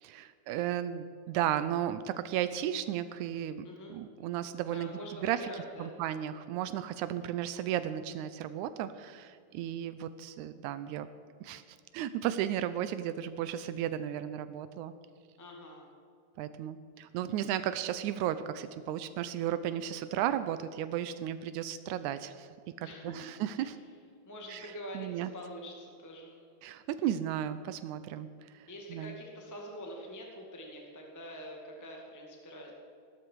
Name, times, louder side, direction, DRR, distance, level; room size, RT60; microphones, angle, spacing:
voice 1, 0.0-11.1 11.4-14.9 16.4-23.8 24.5-25.3 26.6-29.2, right 11 dB, 85° right, 12 dB, 2.0 m, -34 dB
voice 2, 3.6-4.0 4.7-6.0 15.4-15.9 22.8-23.7 24.3-26.4 28.7-32.7, equal, 5° left, -1 dB, 1.7 m, -45 dB
17.0 x 13.0 x 4.7 m, 2.4 s
omnidirectional pair, 3.4 m